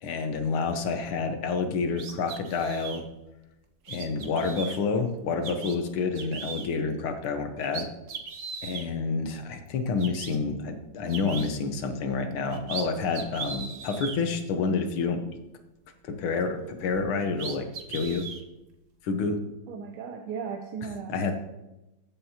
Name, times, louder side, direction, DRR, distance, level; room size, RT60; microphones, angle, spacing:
voice 1, 0.0-3.1 3.9-7.9 8.6-15.2 16.0-18.3 19.0-19.4 21.1-21.3, left 4 dB, 90° left, 6 dB, 1.9 m, -29 dB
sound 1, 1.9-3.0 3.9-4.8 5.4-5.8 6.2-6.7 7.2-7.3 7.6-8.9 9.7-9.8 10.0-10.4 11.1-11.5 12.3-12.9 13.1-14.2 16.9-17.0 17.4-18.4, right 5 dB, 50° right, 1.1 m, -38 dB
voice 2, 19.7-21.3, right 6 dB, 90° right, 4 dB, 1.6 m, -36 dB
14.0 x 7.5 x 2.8 m, 0.98 s
omnidirectional pair, 2.3 m